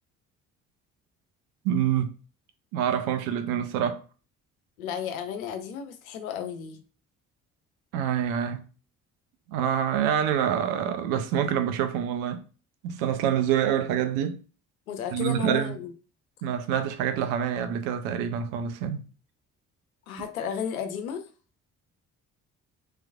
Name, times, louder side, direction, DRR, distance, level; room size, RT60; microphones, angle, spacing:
voice 1, 1.6-2.1 2.7-4.0 7.9-8.6 9.5-12.4 12.8-14.4 15.1-15.8 16.4-19.0, right 9 dB, 60° right, 0.6 m, -26 dB
voice 2, 4.8-6.8 14.9-15.9 20.1-21.2, left 8 dB, 80° left, 0.5 m, -33 dB
3.1 x 2.9 x 2.3 m
figure-of-eight pair, 45°, 41 cm